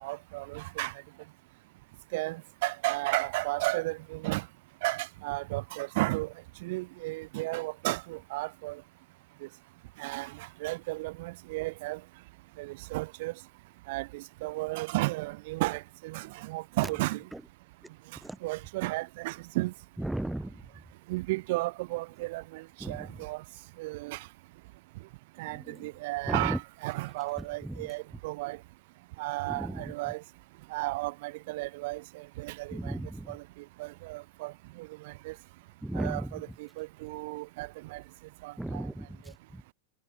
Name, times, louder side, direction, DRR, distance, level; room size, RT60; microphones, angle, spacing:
voice 1, 0.0-0.9 2.1-4.4 4.8-6.3 6.6-8.8 10.0-12.0 12.6-13.3 13.9-17.2 18.4-19.7 21.1-23.4 23.8-24.3 25.4-28.6 29.2-30.2 30.7-32.9 33.3-33.4 33.8-34.5 34.8-35.3 35.9-38.0 38.4-38.8, right 21 dB, 50° right, 0.6 m, -33 dB
voice 2, 20.0-20.6 22.8-23.1 25.5-25.9 26.3-26.6 27.6-27.8 29.5-29.9 32.7-33.4 35.8-36.3 38.6-39.6, right 1 dB, 5° right, 0.6 m, -35 dB
figure-of-eight pair, 90°, 0 cm